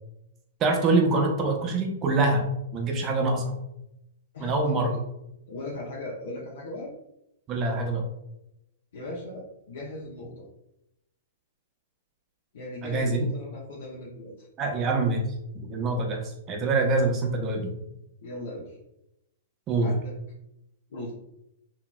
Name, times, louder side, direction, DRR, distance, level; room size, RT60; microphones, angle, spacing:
voice 1, 0.6-2.5 2.7-3.5 4.4-4.9 7.5-8.0 12.8-13.3 14.6-15.2 15.5-17.7 19.7-19.9, right 3 dB, 30° right, 2 dB, 0.7 m, -25 dB
voice 2, 4.3-5.0 5.5-6.9 8.9-10.5 12.5-14.5 18.2-18.8 19.8-20.1 20.9-21.1, left 2 dB, 70° left, -4 dB, 0.7 m, -38 dB
2.8 x 2.8 x 2.2 m, 0.85 s
hypercardioid pair, 115°, 0 cm